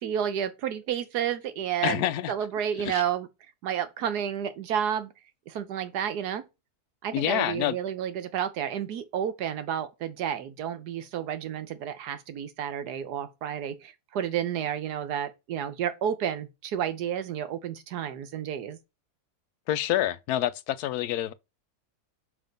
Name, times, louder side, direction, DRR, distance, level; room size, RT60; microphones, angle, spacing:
voice 1, 0.0-3.3 3.6-5.1 5.5-6.4 7.0-18.8, right 9 dB, 90° right, 1.4 m, -31 dB
voice 2, 1.8-2.3 2.8-3.0 7.1-7.8 19.7-21.3, left 12 dB, 80° left, 1.1 m, -27 dB
5.7 x 3.6 x 5.2 m
omnidirectional pair, 1.7 m